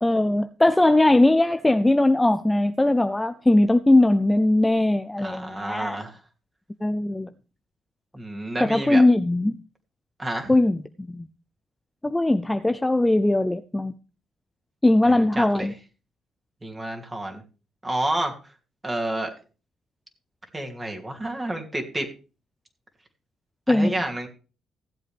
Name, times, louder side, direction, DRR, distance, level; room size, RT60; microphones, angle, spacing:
voice 1, 0.0-6.0 6.8-7.3 8.6-9.6 10.5-11.3 12.0-13.9 14.8-15.7 23.7-24.0, left 1 dB, 10° left, 10 dB, 0.5 m, -20 dB
voice 2, 5.2-6.2 8.1-9.0 10.2-10.5 15.0-15.7 16.6-17.4 17.8-18.3 18.8-19.3 20.5-22.1 23.7-24.3, right 1 dB, 20° right, 2 dB, 2.8 m, -29 dB
16.5 x 7.9 x 3.5 m, 0.34 s
cardioid pair, 90°, 0 cm